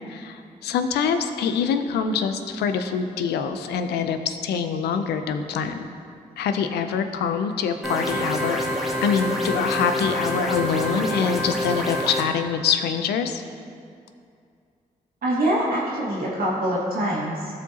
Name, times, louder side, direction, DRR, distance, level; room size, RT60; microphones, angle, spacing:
voice 1, 0.1-5.9 6.4-8.6 9.0-13.4, left 6 dB, 85° left, 8 dB, 0.5 m, -25 dB
sound 1, 7.8-12.2, equal, ahead, 1.7 m, -27 dB
voice 2, 15.2-17.5, right 1 dB, 65° right, -6 dB, 1.7 m, -24 dB
14.0 x 5.0 x 2.8 m, 2.3 s
supercardioid pair, 45°, 17 cm